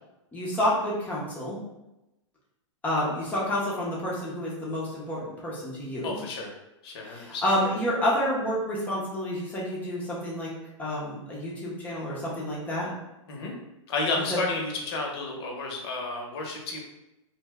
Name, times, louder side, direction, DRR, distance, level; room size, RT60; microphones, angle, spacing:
voice 1, 0.3-1.6 2.8-6.2 7.1-10.5 10.8-12.9 14.3-14.4, left 1 dB, 10° left, -5 dB, 0.6 m, -29 dB
voice 2, 6.0-6.5 6.8-7.4 13.3-13.5 13.9-16.8, left 3 dB, 50° left, 0 dB, 0.7 m, -31 dB
2.6 x 2.1 x 3.4 m, 0.93 s
hypercardioid pair, 155°, 17 cm